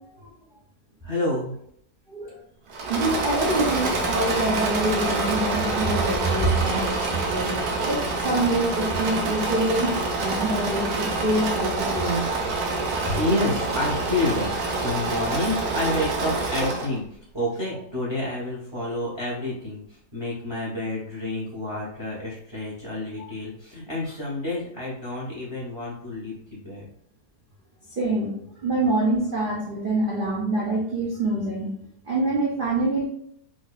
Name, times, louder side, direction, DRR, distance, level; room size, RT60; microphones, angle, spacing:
voice 1, 1.0-1.5 5.8-6.7 12.9-17.0 17.3-26.9, left 1 dB, 20° right, -6 dB, 0.7 m, -29 dB
Engine / Mechanisms, 2.7-17.0, right 3 dB, 65° right, 1.1 m, -26 dB
voice 2, 2.9-12.2 28.0-28.3 28.6-31.7 32.1-33.1, right 2 dB, 80° right, -4 dB, 0.4 m, -26 dB
4.6 x 2.5 x 2.4 m, 0.68 s
omnidirectional pair, 2.0 m